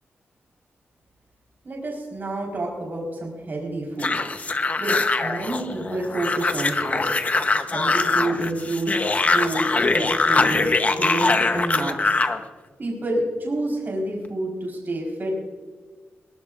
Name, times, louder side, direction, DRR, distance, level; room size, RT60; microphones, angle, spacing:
voice 1, 1.6-4.2 4.8-7.1 7.7-12.2 12.8-15.4, right 1 dB, 45° right, -1 dB, 4.2 m, -28 dB
sound 1, 4.0-12.4, left 3 dB, 30° left, 0.9 m, -22 dB
21.5 x 19.0 x 2.5 m, 1.4 s
wide cardioid pair, 115°, 5 cm